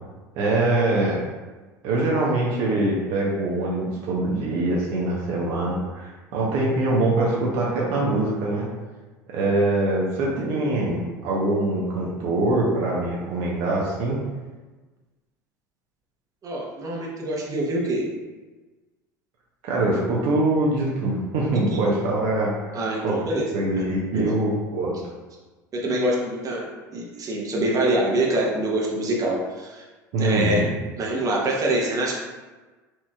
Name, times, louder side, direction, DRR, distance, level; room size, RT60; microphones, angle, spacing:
voice 1, 0.4-1.2 1.8-8.7 9.3-14.2 19.6-22.5 23.0-24.9 30.1-30.7, right 2 dB, 60° right, -4 dB, 0.8 m, -23 dB
voice 2, 16.4-18.0 21.7-21.8 22.7-23.5 24.1-24.3 25.7-26.6 26.9-29.8 30.2-30.6 31.0-32.1, right 1 dB, 35° right, -2 dB, 0.9 m, -25 dB
4.5 x 2.9 x 2.3 m, 1.3 s
hypercardioid pair, 75°, 10 cm